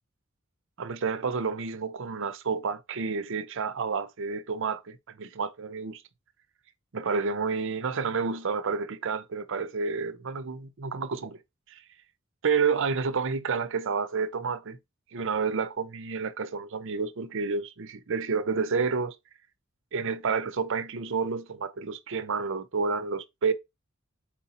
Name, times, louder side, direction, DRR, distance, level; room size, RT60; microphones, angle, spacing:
voice 1, 0.8-6.0 6.9-11.4 11.7-11.8 12.4-14.8 15.1-19.2 19.9-23.5, right 5 dB, 65° right, 0.6 m, -30 dB
4.4 x 2.9 x 4.1 m
head